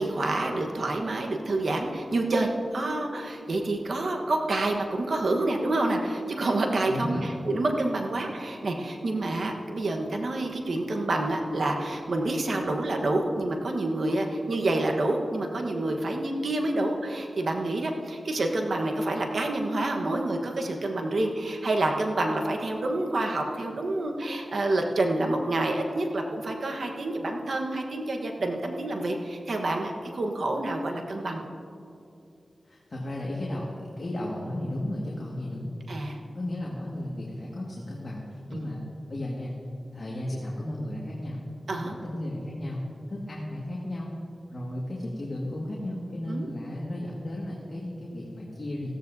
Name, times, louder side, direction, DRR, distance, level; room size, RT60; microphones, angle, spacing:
voice 1, 0.0-31.4 35.9-36.2 38.5-38.6 41.7-41.9 46.3-46.5, right 2 dB, 70° right, 2 dB, 1.2 m, -28 dB
voice 2, 6.9-7.3 32.6-33.6 34.0-35.7 36.3-38.8 39.1-39.5 39.9-41.4 41.7-42.8 43.1-44.1 44.5-48.9, left 1 dB, 50° left, -4 dB, 1.9 m, -34 dB
16.0 x 14.0 x 2.7 m, 2.6 s
cardioid pair, 55°, 0 cm